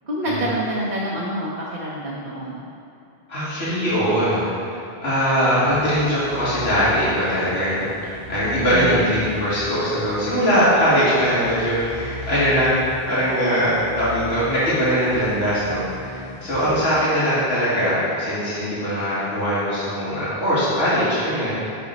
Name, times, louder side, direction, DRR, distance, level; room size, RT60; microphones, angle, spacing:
voice 1, 0.0-2.6 8.7-9.1, right 1 dB, 50° right, -6 dB, 1.1 m, -27 dB
voice 2, 3.3-4.4 5.0-7.9 8.3-12.7 13.0-21.6, equal, 80° left, -11 dB, 2.3 m, -21 dB
sound 1, 5.7-17.6, left 3 dB, 45° left, 1.0 m, -38 dB
7.8 x 6.3 x 4.0 m, 2.7 s
omnidirectional pair, 1.0 m